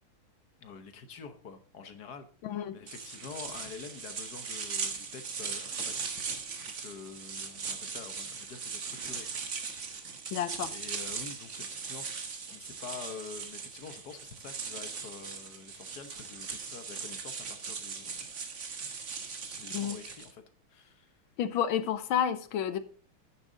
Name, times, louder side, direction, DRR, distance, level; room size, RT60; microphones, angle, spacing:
voice 1, 0.6-2.3 2.7-6.2 6.6-10.1 10.7-12.2 12.5-18.3 19.4-20.4 20.7-21.2, left 6 dB, 55° left, 1.4 m, -47 dB
voice 2, 2.4-2.7 10.3-10.7 19.7-20.0 21.4-22.8, left 9 dB, 75° left, 1.5 m, -30 dB
sound 1, 2.9-20.3, right 5 dB, 40° right, 1.3 m, -39 dB
10.0 x 9.1 x 3.8 m
omnidirectional pair, 2.3 m